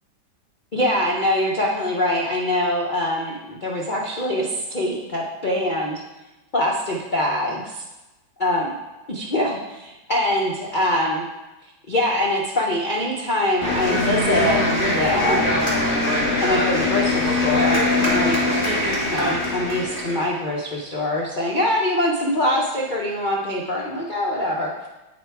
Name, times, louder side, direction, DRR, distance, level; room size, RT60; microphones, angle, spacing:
voice 1, 0.7-6.0 6.5-7.8 8.4-8.7 9.1-11.3 11.9-15.5 16.4-18.5 19.0-24.7, left 1 dB, 80° left, -3 dB, 0.4 m, -23 dB
sound 1, 13.6-20.3, left 2 dB, 25° left, 2.2 m, -21 dB
8.5 x 4.6 x 4.6 m, 1.0 s
omnidirectional pair, 2.3 m